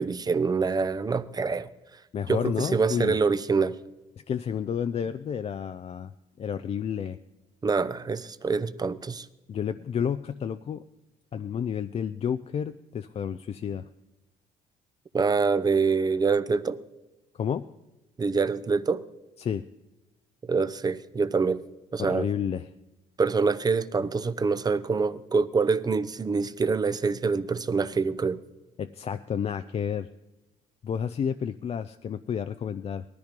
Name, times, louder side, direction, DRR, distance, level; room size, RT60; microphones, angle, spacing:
voice 1, 0.0-1.7 2.3-3.7 7.6-9.3 15.1-16.8 18.2-19.0 20.5-21.6 21.9-22.3 23.2-28.4, right 4 dB, 25° right, 13 dB, 0.7 m, -25 dB
voice 2, 2.1-3.2 4.3-6.1 6.4-7.2 9.5-10.8 11.3-13.9 17.3-17.7 19.4-19.7 22.0-22.7 28.8-30.1 30.8-33.0, left 8 dB, 35° left, 10 dB, 0.5 m, -30 dB
19.0 x 13.5 x 5.2 m, 1.0 s
cardioid pair, 110°, 17 cm